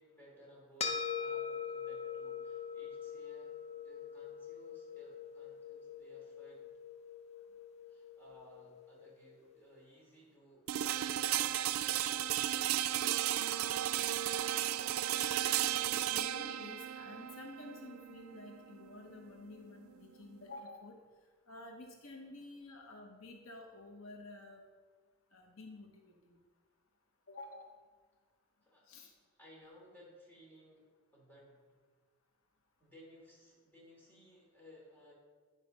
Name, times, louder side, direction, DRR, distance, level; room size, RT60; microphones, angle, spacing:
voice 1, 0.0-3.6 3.8-6.6 7.9-12.8 28.6-28.9 29.4-30.8 31.1-31.6 32.8-35.1, equal, 10° left, -5 dB, 3.0 m, -59 dB
sound 1, 0.8-9.4, left 6 dB, 30° left, 0.6 m, -43 dB
sound 2, 10.7-20.6, right 12 dB, 90° right, 0.4 m, -35 dB
voice 2, 15.9-21.0 21.5-24.6 25.3-26.4 27.3-27.7 28.9-29.1, left 2 dB, 80° left, 2 dB, 1.0 m, -51 dB
10.0 x 4.9 x 5.3 m, 1.5 s
head